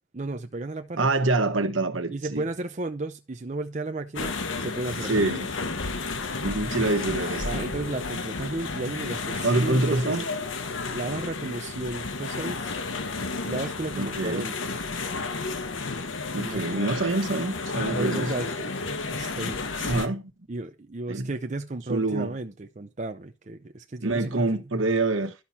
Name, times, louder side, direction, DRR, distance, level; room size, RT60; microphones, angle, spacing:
voice 1, 0.1-1.1 2.1-4.3 4.6-5.3 7.4-10.2 10.9-12.8 13.5-14.7 16.4-16.9 17.9-18.7 19.1-20.0 20.5-24.6, right 2 dB, 35° right, 0.6 m, -34 dB
voice 2, 1.0-2.5 5.1-5.5 6.4-7.6 9.4-10.2 13.9-14.5 16.3-18.3 19.8-20.3 21.1-21.3 21.9-22.4 24.0-25.3, right 2 dB, 75° right, 1.4 m, -26 dB
sound 1, 4.2-20.1, left 3 dB, 75° left, 1.2 m, -32 dB
12.0 x 5.9 x 4.2 m
head